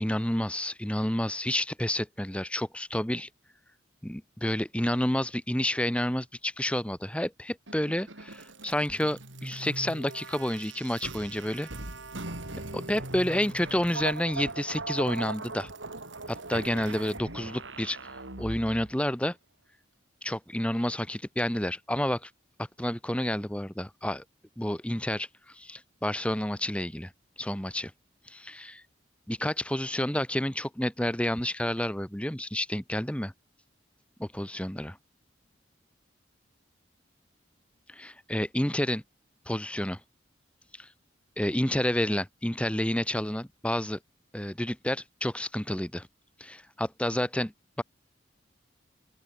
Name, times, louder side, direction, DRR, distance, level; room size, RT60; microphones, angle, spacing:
voice 1, 0.0-3.3 4.0-11.7 12.7-15.7 16.3-18.0 18.4-19.4 20.2-22.3 22.8-24.2 24.6-27.1 27.4-27.9 28.3-28.8 29.3-33.3 34.2-35.0 37.9-39.0 39.5-40.0 40.8-40.9 41.4-44.0 44.3-46.1 46.4-47.5 47.8-47.9, left 1 dB, 5° left, 1.3 m, -30 dB
sound 1, 7.7-18.9, right 2 dB, 75° right, 4.3 m, -40 dB
open air
head